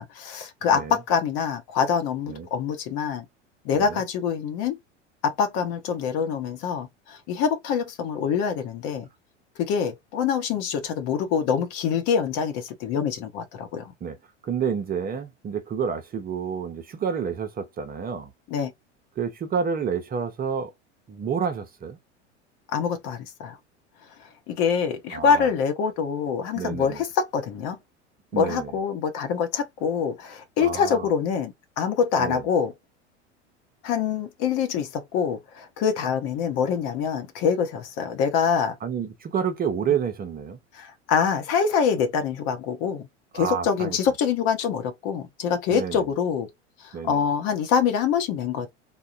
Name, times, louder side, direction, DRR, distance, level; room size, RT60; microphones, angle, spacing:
voice 1, 0.0-3.2 3.6-4.8 5.2-9.1 9.6-13.9 18.5-18.7 22.7-23.6 24.5-27.8 28.4-32.7 33.8-38.8 40.7-43.0 43.3-46.5 47.0-48.7, left 6 dB, 45° left, 0.9 m, -25 dB
voice 2, 0.7-1.0 2.3-2.5 3.7-4.0 14.0-14.2 14.4-18.3 19.2-20.7 21.1-22.0 25.1-25.5 26.5-27.0 28.3-28.8 30.6-31.1 32.2-32.4 38.8-40.6 43.3-44.1 45.7-46.1 46.9-47.2, right 7 dB, 25° right, 0.7 m, -29 dB
3.6 x 2.2 x 2.5 m
hypercardioid pair, 85°, 36 cm